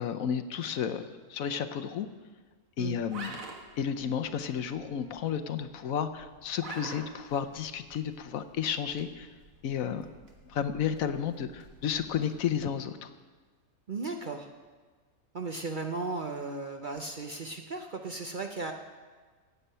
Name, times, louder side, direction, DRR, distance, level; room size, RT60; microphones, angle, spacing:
voice 1, 0.0-2.1 2.8-3.4 3.8-9.3 9.6-10.1 10.5-13.1, left 8 dB, 70° left, 10 dB, 1.1 m, -32 dB
sound 1, 3.0-12.8, right 3 dB, 65° right, 2.0 m, -49 dB
voice 2, 13.9-14.5 15.3-18.7, right 3 dB, 45° right, 4 dB, 0.7 m, -36 dB
15.0 x 9.1 x 5.5 m, 1.4 s
omnidirectional pair, 1.5 m